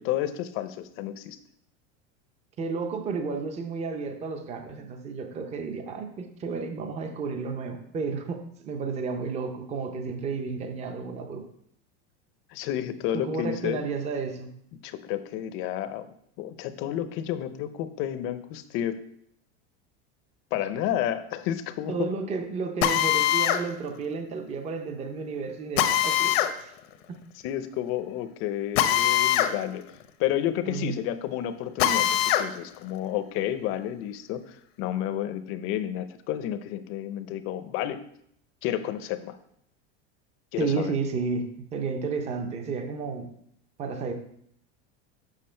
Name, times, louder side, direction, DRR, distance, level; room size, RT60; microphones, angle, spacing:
voice 1, 0.0-1.4 12.5-13.8 14.8-16.1 16.4-19.0 20.5-22.1 27.4-29.8 30.2-38.0 38.6-39.4 40.5-40.9, left 11 dB, 40° left, 11 dB, 0.6 m, -31 dB
voice 2, 2.6-11.5 13.1-14.5 21.9-26.7 30.6-30.9 40.6-41.4 41.7-43.3 43.8-44.1, right 4 dB, 20° right, 6 dB, 0.6 m, -32 dB
Drill, 22.8-23.6 25.8-26.5 28.7-29.5 29.9-30.0 31.8-32.5, left 12 dB, 75° left, 0.8 m, -22 dB
7.5 x 5.9 x 4.4 m, 0.70 s
supercardioid pair, 160°, 31 cm